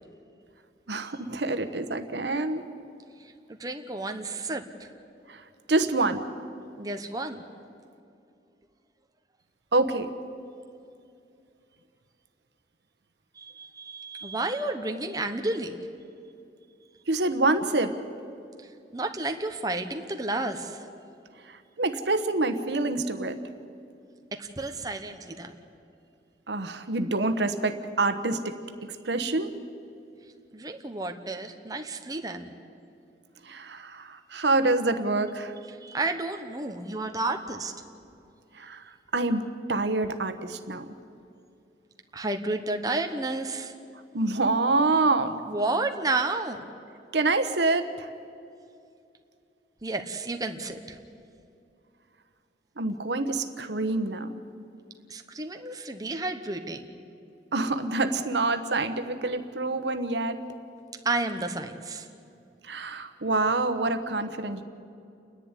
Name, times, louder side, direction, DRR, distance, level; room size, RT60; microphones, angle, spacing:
voice 1, 0.9-2.6 5.3-5.4 5.7-6.2 9.7-10.1 17.1-18.0 21.5-23.4 26.5-28.6 29.0-29.6 33.4-35.5 38.6-38.8 39.1-40.9 44.1-45.4 47.1-48.1 52.8-54.3 57.5-60.4 62.6-64.6, right 2 dB, 80° right, 9 dB, 1.2 m, -26 dB
voice 2, 3.5-4.9 6.8-7.4 13.4-15.8 18.9-20.8 24.4-25.5 30.5-32.5 35.8-37.7 42.1-43.7 45.5-46.6 49.8-51.0 55.1-57.0 61.0-62.1, right 2 dB, 20° right, 5 dB, 1.0 m, -31 dB
29.0 x 10.5 x 9.9 m, 2.5 s
head